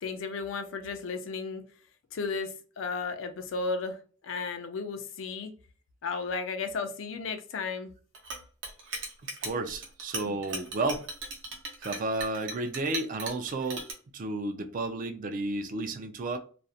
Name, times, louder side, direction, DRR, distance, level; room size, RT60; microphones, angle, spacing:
voice 1, 0.0-1.6 2.1-4.0 4.2-5.5 6.0-7.9 10.2-10.4, left 4 dB, 75° left, 0.4 m, -34 dB
Chink clink, 8.1-13.9, right 3 dB, 65° right, 0.7 m, -38 dB
voice 2, 9.4-11.0 11.8-13.9 14.1-16.4, right 2 dB, 45° right, 0.4 m, -32 dB
2.4 x 2.0 x 2.7 m
head